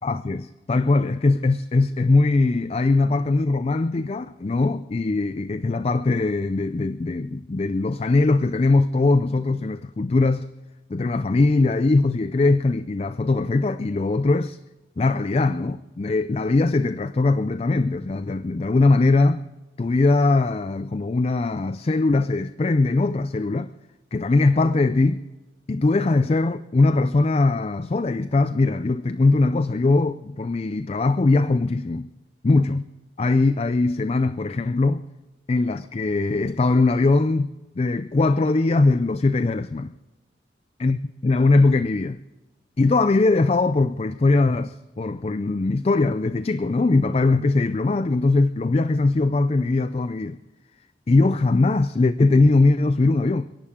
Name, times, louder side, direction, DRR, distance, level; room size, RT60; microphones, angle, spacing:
voice 1, 0.0-10.5 10.9-14.6 15.0-19.4 19.8-23.7 24.1-25.2 25.7-32.1 32.4-32.8 33.2-35.1 35.5-39.9 40.8-42.2 42.8-50.4 51.1-53.5, left 3 dB, 35° left, 0.4 m, -21 dB
29.5 x 11.5 x 3.7 m
head